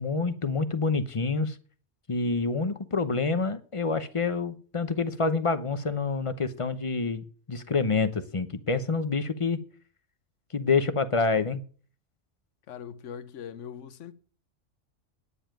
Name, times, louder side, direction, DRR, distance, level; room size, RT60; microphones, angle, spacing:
voice 1, 0.0-1.6 2.1-9.6 10.5-11.6, left 4 dB, 30° left, 0.8 m, -27 dB
voice 2, 12.7-14.1, left 8 dB, 70° left, 1.2 m, -41 dB
9.9 x 7.1 x 9.0 m
omnidirectional pair, 1.3 m